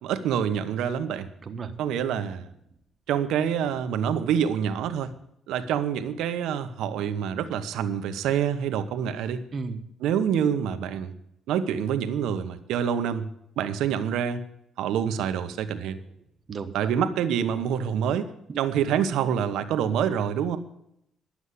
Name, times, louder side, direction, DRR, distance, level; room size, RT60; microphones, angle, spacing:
voice 1, 0.0-1.3 1.8-2.5 3.1-5.1 5.5-9.4 10.0-11.1 11.5-13.3 13.6-14.4 14.8-16.0 16.7-18.3 18.6-20.6, right 8 dB, 85° right, 10 dB, 1.0 m, -26 dB
voice 2, 1.4-1.7 9.5-9.8 16.5-16.9 18.5-18.6, right 4 dB, 45° right, 8 dB, 1.3 m, -34 dB
11.5 x 7.2 x 8.3 m, 0.77 s
cardioid pair, 90°, 0 cm